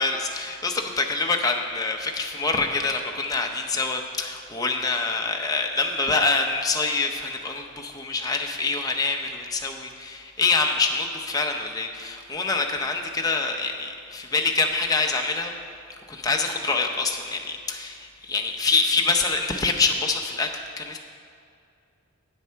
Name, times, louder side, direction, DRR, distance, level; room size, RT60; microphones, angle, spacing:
voice 1, 0.0-15.5 16.1-21.0, left 3 dB, 15° left, 3 dB, 0.6 m, -25 dB
8.3 x 7.9 x 5.6 m, 2.4 s
head